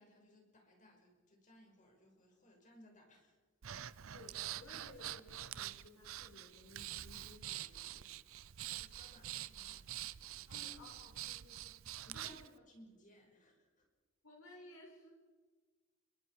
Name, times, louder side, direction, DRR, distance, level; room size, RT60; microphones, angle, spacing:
voice 1, 0.0-3.4 8.8-10.7 12.0-13.9, left 1 dB, 40° left, 1 dB, 5.7 m, -63 dB
Breathing, 3.6-12.5, right 12 dB, 70° right, 0.6 m, -46 dB
voice 2, 4.1-8.1 10.5-11.8 12.1-12.5 14.2-15.1, left 1 dB, 90° left, 0 dB, 5.3 m, -58 dB
29.0 x 23.5 x 4.9 m, 1.3 s
head